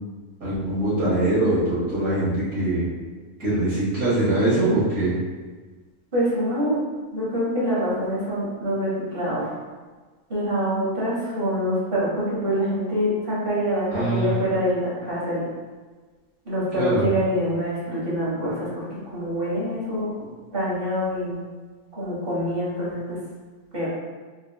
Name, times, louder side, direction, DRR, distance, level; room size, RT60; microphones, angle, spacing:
voice 1, 0.4-2.8 3.4-5.2 13.9-14.4 16.7-17.1, right 1 dB, 70° right, -10 dB, 2.1 m, -22 dB
voice 2, 6.1-6.8 7.1-9.4 10.3-15.4 16.4-18.7 19.1-20.3 20.5-21.4 21.9-23.2 23.7-23.9, equal, 40° right, -8 dB, 1.6 m, -25 dB
4.2 x 3.8 x 2.3 m, 1.4 s
omnidirectional pair, 1.5 m